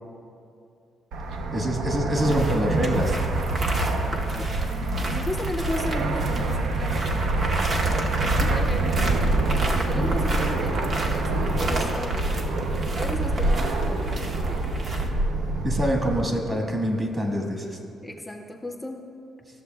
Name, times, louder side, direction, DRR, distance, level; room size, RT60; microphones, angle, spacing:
Fixed-wing aircraft airplane, 1.1-16.2, right 2 dB, 80° right, 0.6 m, -26 dB
voice 1, 1.5-3.1 15.6-17.8, equal, 35° right, 2 dB, 1.4 m, -25 dB
sound 1, 2.1-15.1, right 2 dB, 50° right, 0.9 m, -33 dB
voice 2, 4.1-9.4 9.7-12.4 12.9-14.7 17.9-19.0, left 1 dB, 15° left, 3 dB, 0.5 m, -35 dB
14.0 x 6.7 x 2.3 m, 2.5 s
cardioid pair, 90°, 0 cm